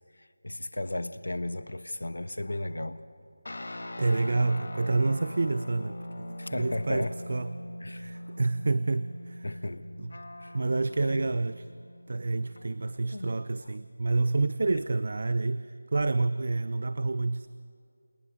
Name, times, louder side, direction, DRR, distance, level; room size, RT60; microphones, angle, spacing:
voice 1, 0.1-3.0 6.4-7.2 7.8-8.4 9.4-10.0 10.4-10.6 11.0-11.3 13.1-13.4 13.6-13.7 14.7-14.8, left 1 dB, 85° left, 12 dB, 1.1 m, -35 dB
sound 1, 3.5-13.2, left 1 dB, 65° left, 1.7 m, -42 dB
voice 2, 4.0-7.5 7.9-9.5 10.0-10.1 10.5-11.7 12.1-17.5, right 3 dB, 45° right, 15 dB, 0.5 m, -28 dB
28.0 x 19.0 x 5.3 m, 2.4 s
figure-of-eight pair, 175°, 0 cm